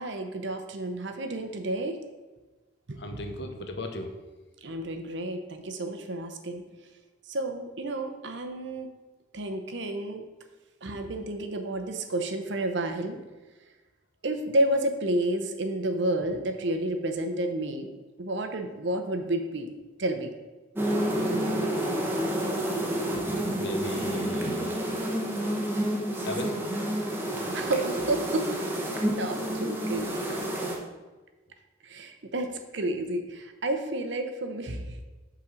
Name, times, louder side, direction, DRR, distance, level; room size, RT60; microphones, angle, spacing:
voice 1, 0.0-2.0 2.9-3.2 4.6-6.6 7.3-8.9 9.3-10.2 10.8-13.2 14.2-17.9 18.2-19.7 20.0-20.3 27.5-28.5 29.1-30.1 31.8-35.0, right 1 dB, 65° right, 6 dB, 0.7 m, -30 dB
voice 2, 3.0-4.1 23.6-24.8 26.2-26.5, left 1 dB, 55° left, 5 dB, 0.8 m, -35 dB
sound 1, 20.8-30.8, right 1 dB, 10° right, 0.8 m, -29 dB
5.7 x 4.0 x 6.2 m, 1.2 s
head